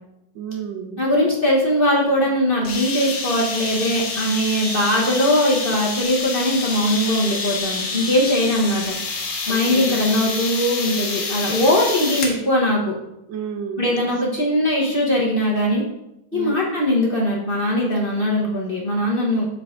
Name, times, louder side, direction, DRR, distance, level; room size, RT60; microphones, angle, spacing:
voice 1, 0.3-1.0 9.5-10.0 13.3-14.1 16.3-16.5, right 7 dB, 85° right, 5 dB, 1.6 m, -31 dB
voice 2, 1.0-9.0 9.5-12.9 13.8-15.8 16.3-19.5, left 1 dB, 35° left, -3 dB, 1.3 m, -20 dB
sound 1, 2.6-12.4, left 3 dB, 55° left, 1.6 m, -27 dB
7.7 x 5.9 x 3.7 m, 0.88 s
omnidirectional pair, 1.9 m